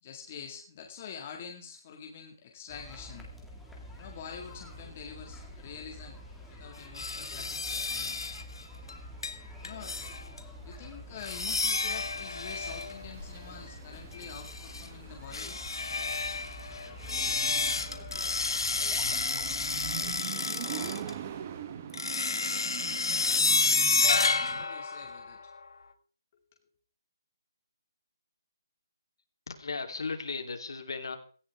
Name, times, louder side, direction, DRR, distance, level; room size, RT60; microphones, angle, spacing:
voice 1, 0.0-3.3 3.9-6.2 6.5-8.2 9.6-10.0 10.6-15.6 24.6-25.5 26.3-26.4, left 7 dB, 25° left, 2 dB, 2.0 m, -46 dB
sound 1, 2.7-20.2, left 1 dB, ahead, 1.9 m, -47 dB
sound 2, 7.0-8.4 8.9-9.0 9.2-9.4 9.6-10.4 11.2-13.4 14.1-14.9 15.3-21.1 21.9-25.6, left 4 dB, 85° left, 2.1 m, -30 dB
sound 3, 8.8-24.6, right 9 dB, 25° right, 1.1 m, -44 dB
voice 2, 29.5-31.2, left 4 dB, 70° left, 4 dB, 3.2 m, -36 dB
17.5 x 15.0 x 3.6 m, 0.41 s
hypercardioid pair, 175°, 2 cm